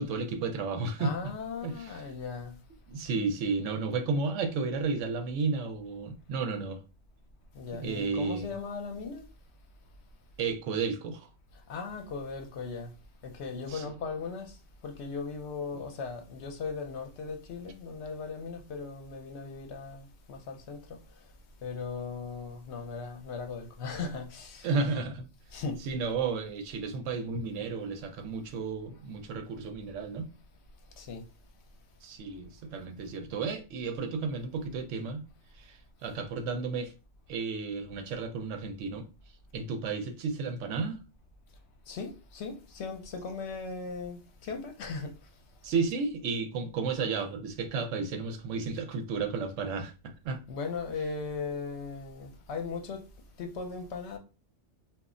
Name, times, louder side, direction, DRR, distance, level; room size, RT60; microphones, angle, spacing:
voice 1, 0.0-1.1 1.6-2.0 2.9-6.8 7.8-8.5 10.4-11.2 13.7-13.8 24.6-25.3 25.8-30.3 32.0-35.2 35.6-36.9 37.3-39.0 39.5-41.0 45.6-50.4, right 4 dB, 85° right, 0.9 m, -32 dB
voice 2, 1.0-2.5 7.5-9.3 11.7-12.9 13.2-14.6 14.8-21.0 21.6-24.7 25.5-25.8 31.0-31.3 41.9-45.1 50.5-53.0 53.4-54.2, left 4 dB, 70° left, 0.9 m, -38 dB
2.4 x 2.0 x 3.6 m
omnidirectional pair, 1.2 m